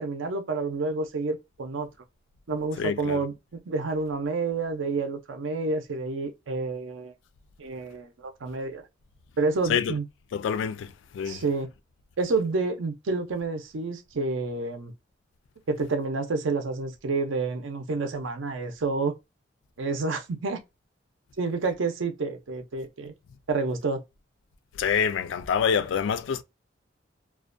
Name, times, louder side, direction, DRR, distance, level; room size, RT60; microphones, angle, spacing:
voice 1, 0.0-1.9 2.5-3.3 3.7-7.1 7.6-8.8 9.4-10.1 11.2-11.7 12.2-14.9 15.7-19.2 19.8-20.6 21.4-23.1 23.5-24.0, right 3 dB, 80° right, 0.5 m, -29 dB
voice 2, 2.8-3.2 9.7-9.9 10.3-11.4 24.8-26.4, left 7 dB, 75° left, 0.3 m, -26 dB
2.3 x 2.2 x 2.5 m
head